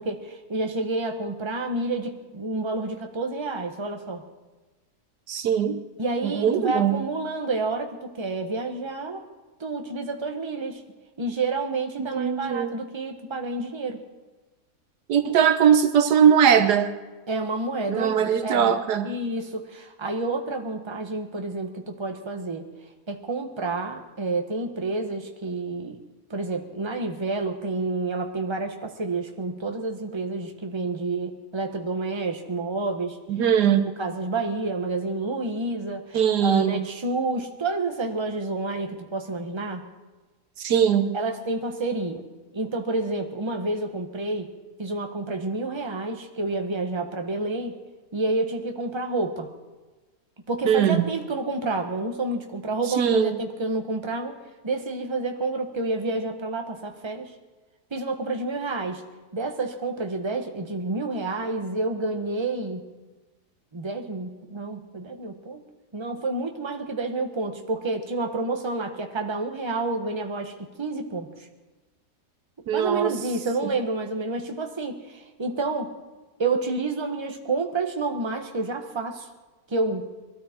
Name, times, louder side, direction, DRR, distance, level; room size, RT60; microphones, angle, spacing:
voice 1, 0.0-4.2 6.0-9.2 9.6-10.8 11.2-14.0 17.3-18.7 19.0-22.6 23.1-26.0 26.3-33.2 33.7-39.9 41.1-42.3 42.5-44.5 44.8-47.8 48.1-49.5 50.5-54.4 54.6-57.3 57.9-59.0 59.3-62.9 63.7-65.6 65.9-71.3 72.7-75.9 76.4-79.3 79.7-80.1, right 3 dB, 20° right, 4 dB, 1.2 m, -29 dB
voice 2, 5.3-5.8 6.2-7.1 12.0-12.7 15.1-16.9 17.9-19.1 33.3-33.9 36.1-36.9 40.6-41.2 50.6-51.0 53.0-53.4 72.7-73.1, right 8 dB, 85° right, 9 dB, 1.5 m, -20 dB
21.5 x 13.5 x 4.5 m, 1.2 s
omnidirectional pair, 1.7 m